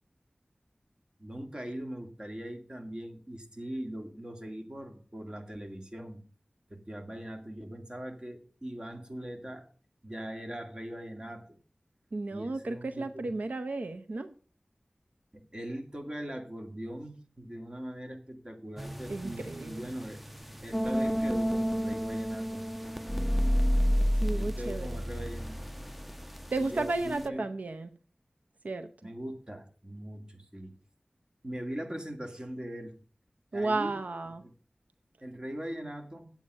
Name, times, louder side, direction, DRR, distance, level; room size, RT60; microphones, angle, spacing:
voice 1, 1.2-6.2 6.7-9.7 10.0-11.6 12.3-13.3 15.3-20.2 20.6-22.6 23.9-25.6 26.6-27.4 29.0-30.7 31.4-33.0 33.5-34.0 34.4-34.5 35.2-36.3, right 1 dB, 35° right, 5 dB, 2.1 m, -41 dB
voice 2, 12.1-14.3 19.1-19.8 24.1-25.0 26.5-27.9 28.6-28.9 33.5-34.4, right 2 dB, 80° right, 7 dB, 0.7 m, -33 dB
sound 1, 18.8-27.3, equal, 5° right, 0.6 m, -31 dB
9.4 x 8.5 x 5.4 m, 0.40 s
wide cardioid pair, 50°, 3 cm